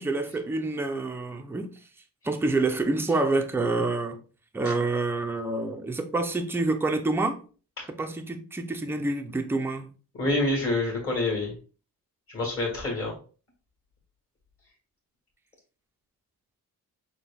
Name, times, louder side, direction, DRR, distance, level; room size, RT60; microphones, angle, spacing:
voice 1, 0.0-1.7 2.2-4.2 4.5-7.4 7.9-9.9, right 2 dB, 5° right, 0.3 m, -27 dB
voice 2, 10.2-11.5 12.3-13.1, left 2 dB, 40° left, 1.6 m, -27 dB
5.9 x 2.2 x 3.5 m
wide cardioid pair, 175°, 36 cm